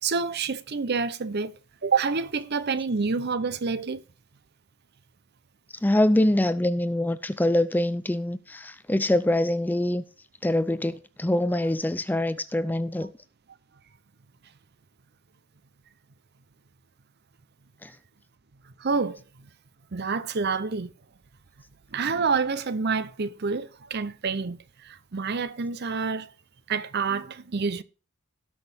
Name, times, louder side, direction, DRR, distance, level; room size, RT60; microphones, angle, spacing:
voice 1, 0.0-1.5 1.8-4.0 18.8-19.2 19.9-20.9 21.9-24.6 24.8-26.3 26.7-27.8, right 5 dB, 50° right, 0.7 m, -27 dB
voice 2, 5.8-10.0 10.4-13.1 17.8-17.9, left 1 dB, 10° left, 0.4 m, -24 dB
17.5 x 6.2 x 3.5 m
head